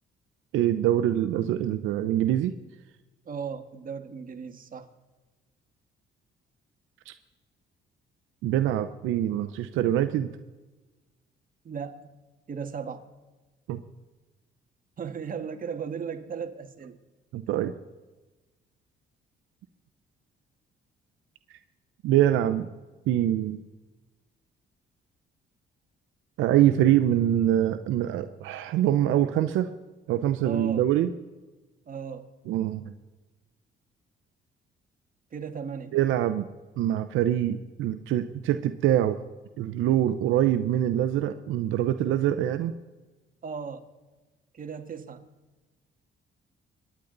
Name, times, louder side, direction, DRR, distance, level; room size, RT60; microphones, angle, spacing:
voice 1, 0.5-2.5 7.1-7.2 8.4-10.3 13.7-13.8 17.3-17.7 22.0-22.7 23.1-23.6 26.4-29.7 30.1-31.1 32.5-32.8 35.9-36.4 36.8-39.2 39.6-42.7, right 12 dB, 90° right, 10 dB, 0.7 m, -24 dB
voice 2, 3.2-4.9 11.6-12.1 12.5-13.1 15.0-17.0 30.4-30.8 31.9-32.3 35.3-35.9 43.4-43.8 44.5-45.3, right 6 dB, 45° right, 6 dB, 1.7 m, -36 dB
23.5 x 10.0 x 4.0 m, 1.2 s
cardioid pair, 90°, 20 cm